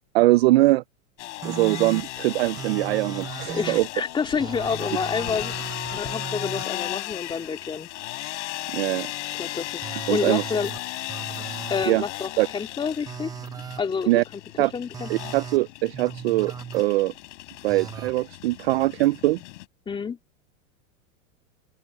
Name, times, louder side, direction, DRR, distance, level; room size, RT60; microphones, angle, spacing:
voice 1, 0.1-0.8 1.4-3.9 8.7-9.1 10.1-10.4 11.9-12.0 12.4-12.5 14.1-14.2 14.6-14.7 15.1-17.1 17.6-19.4, right 18 dB, 50° right, 0.5 m, -22 dB
sound 1, 1.2-19.7, left 18 dB, 60° left, 5.8 m, -36 dB
sound 2, 1.4-2.0 2.6-3.8 4.4-6.6 9.8-10.8 11.1-11.9 13.1-13.8 14.9-15.6 15.9-16.8 17.7-18.1, right 7 dB, 10° right, 0.7 m, -37 dB
voice 2, 3.5-5.5 5.9-7.9 9.4-10.7 11.7-13.3 13.8-14.4 14.7-15.1 19.9-20.2, left 5 dB, 10° left, 2.4 m, -28 dB
open air
supercardioid pair, 155°, 41 cm